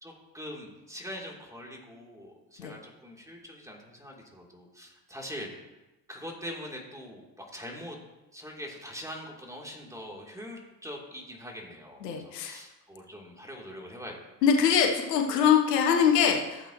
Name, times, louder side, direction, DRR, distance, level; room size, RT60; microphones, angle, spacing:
voice 1, 0.0-5.5 6.1-8.0 8.3-14.2, equal, 5° right, -2 dB, 3.3 m, -43 dB
voice 2, 12.0-12.6 14.4-16.7, left 7 dB, 85° left, 2 dB, 1.2 m, -23 dB
14.5 x 8.1 x 3.1 m, 1.0 s
hypercardioid pair, 55°, 47 cm